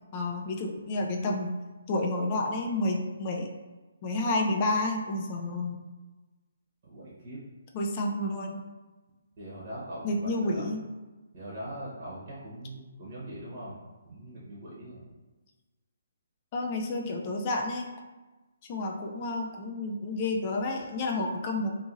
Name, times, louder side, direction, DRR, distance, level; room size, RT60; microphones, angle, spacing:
voice 1, 0.1-1.5 1.9-3.5 4.0-5.8 7.7-8.6 10.0-10.8 16.5-17.9 18.7-21.7, left 2 dB, 30° left, 1 dB, 0.3 m, -30 dB
voice 2, 6.8-7.4 9.4-10.7 11.3-13.8 14.0-15.1, right 1 dB, 40° right, -7 dB, 0.8 m, -41 dB
2.7 x 2.6 x 2.5 m, 1.2 s
figure-of-eight pair, 140°, 0 cm